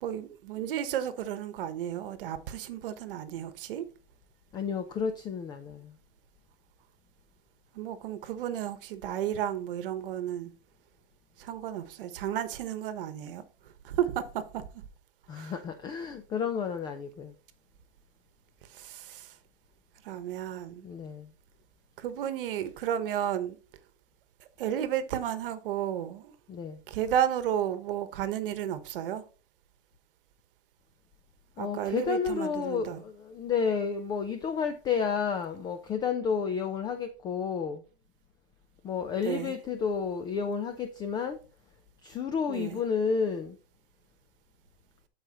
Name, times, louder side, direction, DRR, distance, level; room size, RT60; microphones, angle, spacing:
voice 1, 0.0-3.8 7.7-10.5 11.4-13.4 13.8-14.6 15.3-15.5 18.7-19.3 20.0-20.9 22.0-23.6 24.6-26.3 26.9-29.2 31.6-33.0 39.2-39.6 42.5-42.8, right 10 dB, 55° right, 1.2 m, -32 dB
voice 2, 4.5-5.9 15.3-17.3 20.8-21.3 26.5-26.8 31.6-37.8 38.8-41.4 42.0-43.6, left 6 dB, 15° left, 0.4 m, -31 dB
12.5 x 4.9 x 3.0 m
hypercardioid pair, 140°, 32 cm